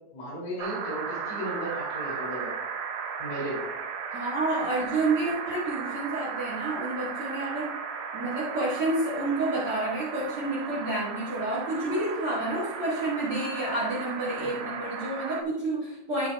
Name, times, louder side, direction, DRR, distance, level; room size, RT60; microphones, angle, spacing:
voice 1, 0.1-2.5 3.2-3.6 14.4-14.7, right 1 dB, 75° left, -6 dB, 5.7 m, -35 dB
sound 1, 0.6-15.4, right 6 dB, 80° right, 3.5 m, -36 dB
voice 2, 4.1-7.8 8.1-16.3, right 2 dB, 65° right, -6 dB, 1.3 m, -29 dB
13.0 x 6.8 x 2.4 m, 0.90 s
omnidirectional pair, 5.9 m